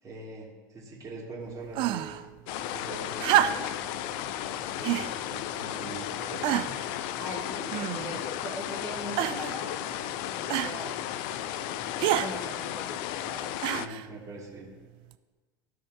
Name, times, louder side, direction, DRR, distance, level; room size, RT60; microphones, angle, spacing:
voice 1, 0.0-2.1 2.7-4.0 4.7-6.7 13.6-14.7, right 3 dB, 30° right, -3 dB, 2.5 m, -43 dB
sound 1, 1.7-2.2 3.2-3.8 4.8-5.1 5.8-5.9 6.4-6.9 7.7-8.2 9.2-9.6 10.5-10.8 12.0-12.3 13.6-14.1 15.1-15.2, right 12 dB, 50° right, 0.4 m, -27 dB
sound 2, 2.5-13.9, left 11 dB, 50° left, 0.4 m, -34 dB
voice 2, 7.2-10.0 10.3-11.0 11.9-13.5, equal, 20° left, -3 dB, 1.1 m, -40 dB
14.5 x 5.0 x 2.7 m, 1.3 s
figure-of-eight pair, 75°, 11 cm